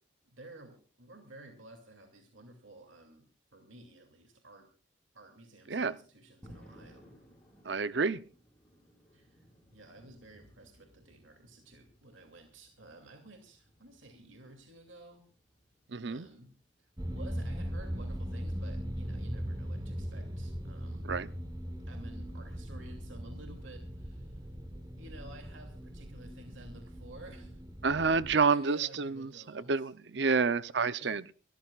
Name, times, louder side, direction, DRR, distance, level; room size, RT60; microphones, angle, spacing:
voice 1, 0.2-4.7 5.1-7.1 9.1-9.4 9.7-15.2 16.0-16.5 16.8-21.1 21.9-24.4 25.0-27.6 28.0-29.9 31.0-31.2, right 1 dB, 85° right, 4 dB, 2.6 m, -53 dB
sound 1, 6.4-19.3, equal, 5° left, 6.7 m, -61 dB
voice 2, 7.7-8.2 15.9-16.3 21.1-21.3 27.8-31.3, right 4 dB, 65° right, 16 dB, 0.6 m, -29 dB
sound 2, 17.0-28.4, equal, 20° right, 1.2 m, -39 dB
29.5 x 14.0 x 2.4 m, 0.36 s
head